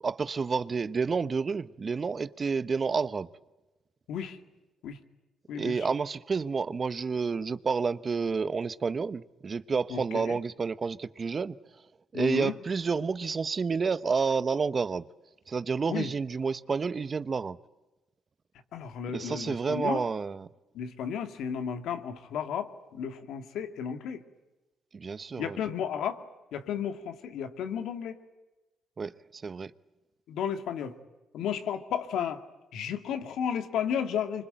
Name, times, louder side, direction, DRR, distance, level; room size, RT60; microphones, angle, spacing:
voice 1, 0.0-3.3 5.5-11.6 12.1-15.1 15.5-17.6 19.1-20.5 24.9-25.6 29.0-29.7, right 5 dB, 35° right, 0.9 m, -30 dB
voice 2, 5.5-5.9 9.9-10.4 12.1-12.5 15.9-16.1 18.7-20.1 20.7-24.2 25.4-26.2 26.5-28.2 30.3-31.0 31.3-32.4 32.7-34.5, left 8 dB, 80° left, 2.3 m, -33 dB
26.0 x 25.0 x 9.1 m
cardioid pair, 90°, 0 cm